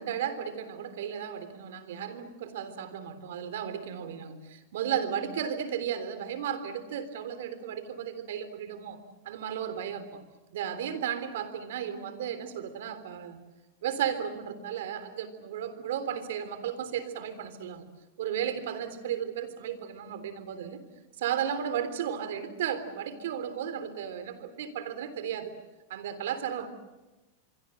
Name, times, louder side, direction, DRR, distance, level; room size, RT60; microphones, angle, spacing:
voice 1, 0.0-9.0 9.3-10.2 10.5-13.4 13.8-17.9 18.2-20.8 21.2-25.5 25.9-26.7, right 9 dB, 75° right, 12 dB, 3.6 m, -34 dB
26.0 x 24.0 x 7.9 m, 1.1 s
supercardioid pair, 140°, 0 cm